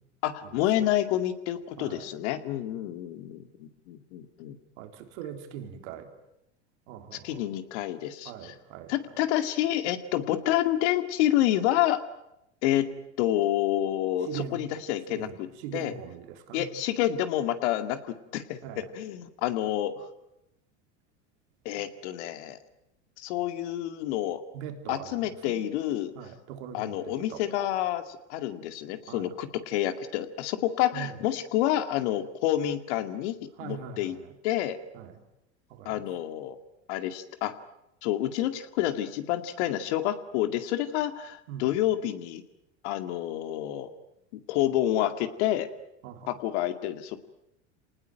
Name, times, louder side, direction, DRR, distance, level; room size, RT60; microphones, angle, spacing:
voice 1, 0.2-4.6 7.1-8.5 8.9-12.0 12.6-12.9 13.2-16.0 16.5-20.1 21.7-22.6 23.2-24.4 24.9-26.1 26.7-34.2 34.4-34.8 35.9-36.6 36.9-37.5 38.0-42.4 42.8-43.9 44.3-45.7 46.3-47.2, left 12 dB, 70° left, 9 dB, 2.2 m, -28 dB
voice 2, 4.8-6.1 6.9-7.4 8.3-8.9 14.3-14.6 15.1-15.4 15.6-16.7 18.6-18.9 24.5-25.2 25.4-25.6 26.2-27.4 29.1-29.3 30.9-31.1 33.6-34.2 34.9-35.1 35.7-36.0 41.5-41.7 46.0-46.3, right 9 dB, 75° right, 5 dB, 3.8 m, -41 dB
26.5 x 19.5 x 9.1 m, 0.86 s
supercardioid pair, 100°, 35 cm